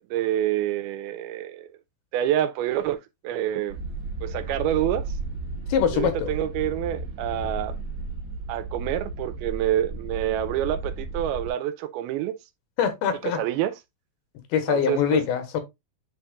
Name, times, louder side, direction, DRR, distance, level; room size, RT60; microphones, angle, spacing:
voice 1, 0.0-1.7 2.1-3.0 3.2-3.8 4.2-5.1 5.9-7.8 8.5-12.3 13.2-13.7 14.7-15.2, right 12 dB, 85° right, 2.6 m, -27 dB
sound 1, 3.7-11.5, right 2 dB, 40° right, 1.7 m, -34 dB
voice 2, 5.7-6.3 12.8-13.4 14.5-15.6, left 8 dB, 85° left, 3.0 m, -23 dB
9.7 x 4.3 x 2.3 m
omnidirectional pair, 4.3 m